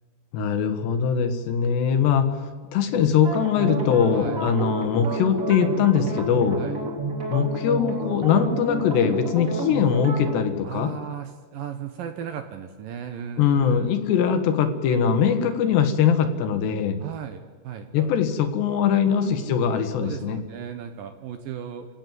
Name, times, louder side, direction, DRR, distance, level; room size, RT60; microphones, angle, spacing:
voice 1, 0.3-2.3 2.7-6.6 7.3-10.9 13.4-17.0 17.9-20.4, left 7 dB, 80° left, 7 dB, 3.7 m, -22 dB
sound 1, 3.2-10.4, right 2 dB, 20° right, 2.6 m, -30 dB
voice 2, 4.1-4.5 6.5-6.9 10.6-13.9 17.0-18.1 19.1-19.6 20.0-21.9, right 8 dB, 70° right, 7 dB, 2.3 m, -36 dB
30.0 x 16.5 x 7.6 m, 1.5 s
omnidirectional pair, 4.9 m